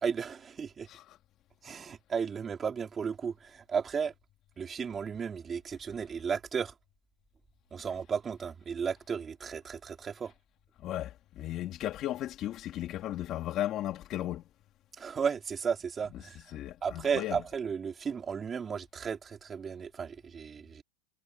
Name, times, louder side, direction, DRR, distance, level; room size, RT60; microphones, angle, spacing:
voice 1, 0.0-0.9 1.6-4.1 4.6-6.7 7.7-10.3 15.0-16.4 16.8-20.8, right 6 dB, 20° right, 3.2 m, -34 dB
voice 2, 10.8-14.4 16.5-17.4, left 13 dB, 35° left, 2.8 m, -35 dB
supercardioid pair, 145°, 0 cm